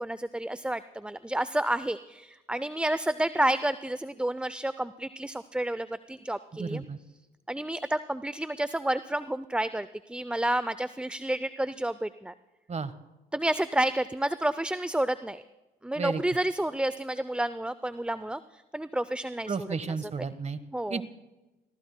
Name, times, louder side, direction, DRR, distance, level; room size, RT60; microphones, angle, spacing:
voice 1, 0.0-6.8 7.5-12.3 13.3-15.4 15.8-19.7 20.7-21.0, right 1 dB, 5° right, 15 dB, 0.5 m, -30 dB
voice 2, 6.6-7.0 12.7-12.9 16.0-16.2 19.5-20.6 20.9-21.0, right 4 dB, 40° right, 12 dB, 1.3 m, -32 dB
29.5 x 16.5 x 2.2 m, 1.1 s
supercardioid pair, 60°, 18 cm